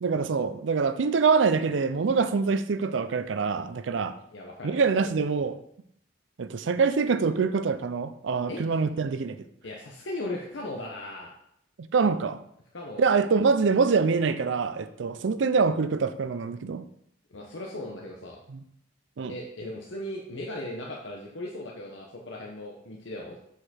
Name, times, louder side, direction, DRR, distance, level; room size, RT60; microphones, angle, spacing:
voice 1, 0.0-4.2 4.6-5.6 6.4-9.4 11.9-12.4 13.0-16.8 18.5-18.6 19.2-19.3, right 5 dB, 80° right, 12 dB, 0.5 m, -25 dB
voice 2, 4.3-5.2 8.5-8.7 9.6-11.3 12.7-13.1 17.3-18.4 19.3-23.4, left 1 dB, 85° left, -1 dB, 0.9 m, -37 dB
6.7 x 4.8 x 4.3 m, 0.74 s
head